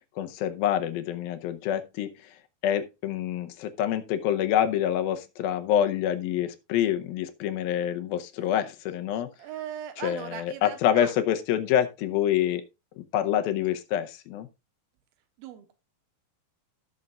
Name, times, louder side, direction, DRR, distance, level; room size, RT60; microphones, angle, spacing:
voice 1, 0.2-9.3 10.0-12.7 13.0-14.5, left 10 dB, 85° left, 2.6 m, -27 dB
voice 2, 9.4-11.1 15.4-15.7, right 10 dB, 85° right, 3.0 m, -39 dB
17.0 x 6.5 x 2.4 m
omnidirectional pair, 4.2 m